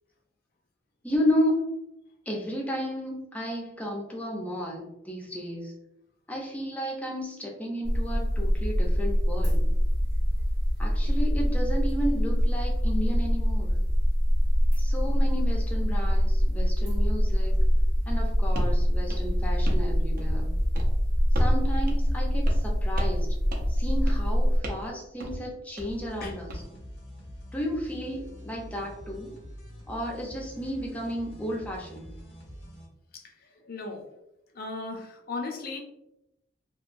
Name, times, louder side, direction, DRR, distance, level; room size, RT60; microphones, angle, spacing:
voice 1, 1.0-1.8 2.3-5.7 6.3-9.7 10.8-13.8 14.8-17.6 18.1-20.5 21.3-23.3 23.7-26.6 27.5-29.4 29.9-32.1, equal, 10° left, -1 dB, 0.6 m, -33 dB
sound 1, 7.8-24.6, equal, 20° right, 0.8 m, -24 dB
sound 2, 18.6-18.8 19.1-19.9 20.2-20.5 20.7-20.9 21.4-21.6 21.9-22.0 22.5-22.7 23.0-23.2 23.5-23.8 24.1-24.3 24.6-24.9 25.2-25.4 25.8-26.6, equal, 50° right, 0.6 m, -34 dB
sound 3, 25.9-32.9, equal, 85° left, 1.0 m, -45 dB
voice 2, 33.6-34.0 34.5-35.8, left 3 dB, 50° left, 2 dB, 0.6 m, -36 dB
3.0 x 2.6 x 2.6 m, 0.83 s
head